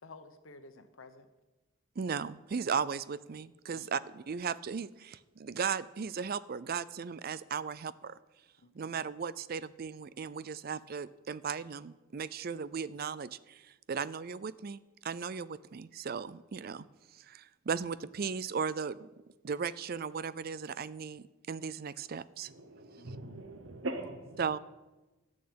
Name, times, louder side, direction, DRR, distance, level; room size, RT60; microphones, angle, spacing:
voice 1, 0.0-1.3 3.7-4.1 8.6-9.0 23.0-23.4, left 3 dB, 80° left, 9 dB, 1.1 m, -54 dB
voice 2, 2.0-8.2 8.7-16.8 17.1-19.1 19.4-22.5 24.4-24.6, right 6 dB, 50° right, 17 dB, 0.4 m, -36 dB
voice 3, 22.5-24.4, right 2 dB, 65° right, 7 dB, 1.0 m, -41 dB
13.0 x 6.4 x 8.6 m, 1.1 s
head